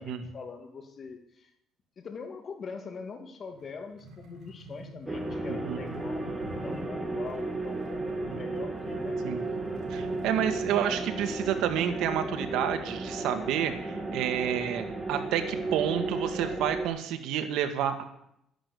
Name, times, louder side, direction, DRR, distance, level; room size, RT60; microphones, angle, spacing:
voice 1, 0.0-1.5 2.0-9.2, left 5 dB, 35° left, 6 dB, 2.4 m, -43 dB
sound 1, 3.5-11.1, equal, 55° right, 4.7 m, -47 dB
sound 2, 5.1-16.8, right 2 dB, 15° right, 2.4 m, -34 dB
voice 2, 5.5-5.8 6.4-6.5 8.3-8.4 9.2-9.4 9.9-18.0, right 9 dB, 80° right, 8 dB, 1.9 m, -30 dB
12.5 x 11.5 x 8.5 m, 0.76 s
cardioid pair, 140°, 0 cm